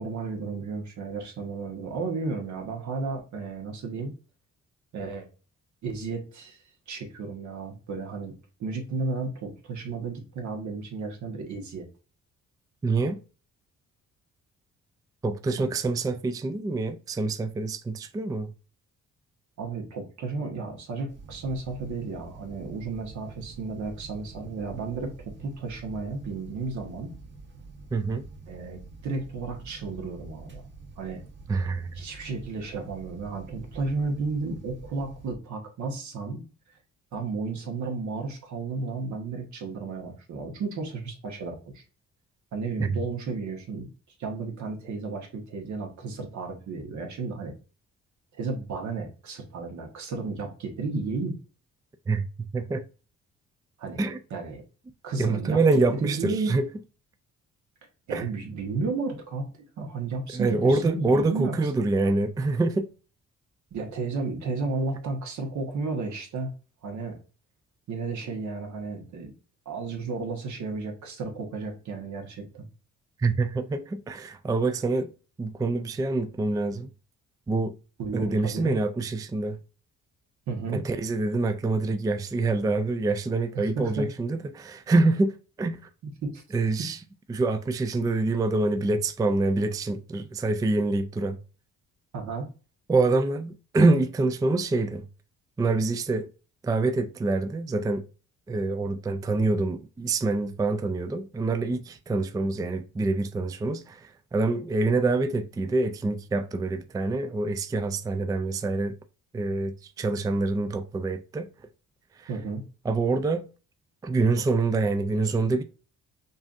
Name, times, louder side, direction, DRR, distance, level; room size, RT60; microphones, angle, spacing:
voice 1, 0.0-4.1 4.9-5.3 5.8-6.6 6.9-8.3 8.6-11.8 15.6-15.7 19.6-27.1 28.5-30.6 31.0-31.2 31.9-36.4 37.1-41.8 42.5-43.9 44.2-47.5 48.3-51.4 53.8-54.0 54.3-54.6 55.0-55.6 56.0-56.6 58.1-59.5 59.8-61.9 63.7-66.5 66.8-67.1 67.9-69.3 69.6-72.7 78.0-78.8 80.5-80.8 83.5-84.1 86.2-86.4 92.1-92.5 112.3-112.6, right 4 dB, 70° right, 1.3 m, -33 dB
voice 2, 12.8-13.2 15.2-18.5 27.9-28.3 31.5-31.9 42.8-42.9 52.1-52.8 54.0-54.2 55.2-56.7 58.1-58.3 60.3-62.9 73.2-75.1 75.4-76.9 77.5-77.7 78.1-79.6 80.7-85.9 86.5-87.0 87.3-91.4 92.9-95.0 95.6-96.3 96.6-98.0 98.5-108.9 109.3-111.5 112.2-112.3 112.8-113.5 114.0-115.6, right 3 dB, 10° right, 0.3 m, -26 dB
sound 1, 21.1-35.4, right 3 dB, 40° right, 1.2 m, -46 dB
5.4 x 2.6 x 2.5 m
cardioid pair, 90°, 30 cm